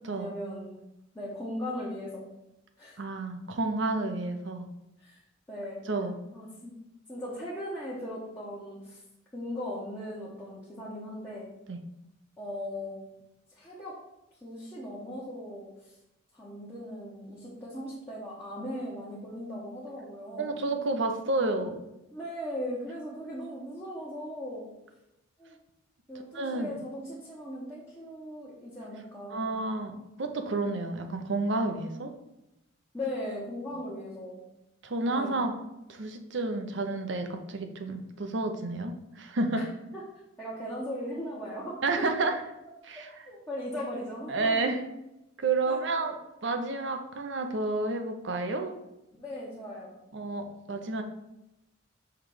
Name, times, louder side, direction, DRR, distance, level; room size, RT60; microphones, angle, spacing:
voice 1, 0.0-0.8 1.1-2.3 2.8-3.0 5.0-5.2 5.5-5.8 6.3-6.7 7.1-9.0 9.3-11.5 12.4-13.0 13.5-14.0 14.4-15.9 16.3-20.6 22.1-24.7 25.4-25.6 26.1-29.6 32.9-34.4 35.1-35.4 39.5-39.7 39.9-40.0 40.4-42.3 43.3-44.8 45.6-46.0 49.2-49.9, equal, 15° left, -8 dB, 1.1 m, -38 dB
voice 2, 3.0-4.7 5.9-6.1 11.7-11.8 20.4-21.8 26.3-26.7 29.3-32.1 34.8-35.5 35.9-39.6 41.8-42.4 42.9-43.1 44.3-44.8 45.4-48.8 50.1-51.0, right 2 dB, 60° right, 5 dB, 0.7 m, -30 dB
5.9 x 3.2 x 4.9 m, 0.90 s
head